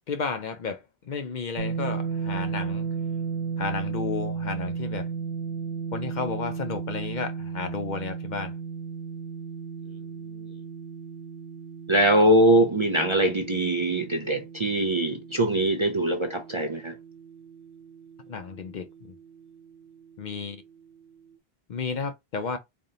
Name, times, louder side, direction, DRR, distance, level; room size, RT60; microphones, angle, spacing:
voice 1, 0.1-2.9 3.6-5.1 5.9-8.5 18.3-18.9 20.2-20.6 21.7-22.6, left 5 dB, 55° left, 0.6 m, -32 dB
sound 1, 1.6-17.5, right 6 dB, 60° right, 0.9 m, -34 dB
voice 2, 11.9-16.9, right 1 dB, 45° right, 0.4 m, -22 dB
3.8 x 3.4 x 2.7 m
omnidirectional pair, 1.0 m